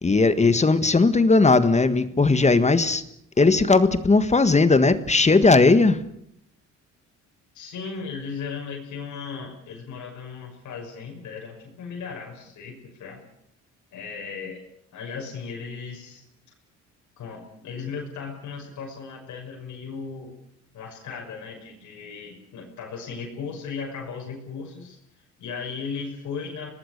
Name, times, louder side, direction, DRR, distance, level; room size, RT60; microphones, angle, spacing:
voice 1, 0.0-3.0 3.4-6.0, left 3 dB, 20° left, 11 dB, 1.6 m, -18 dB
voice 2, 7.5-13.2 13.9-14.6 14.9-16.2 17.2-20.3 20.7-26.7, left 5 dB, 70° left, 0 dB, 6.1 m, -36 dB
25.5 x 19.0 x 6.7 m, 0.72 s
cardioid pair, 90°, 30 cm